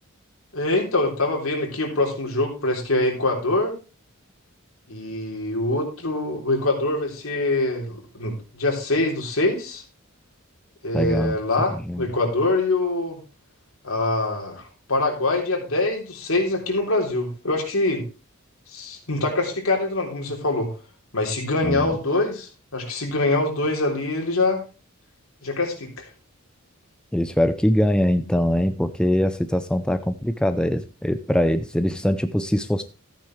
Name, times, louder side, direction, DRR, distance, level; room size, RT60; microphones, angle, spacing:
voice 1, 0.5-3.7 4.9-9.8 10.8-13.2 13.8-14.6 14.9-18.0 18.7-20.7 21.1-24.6 25.4-26.1, left 2 dB, 70° left, 1 dB, 3.4 m, -24 dB
voice 2, 10.9-11.4 11.9-12.1 21.6-21.9 27.1-32.8, equal, 5° left, 9 dB, 0.5 m, -22 dB
13.5 x 9.1 x 3.2 m, 0.32 s
head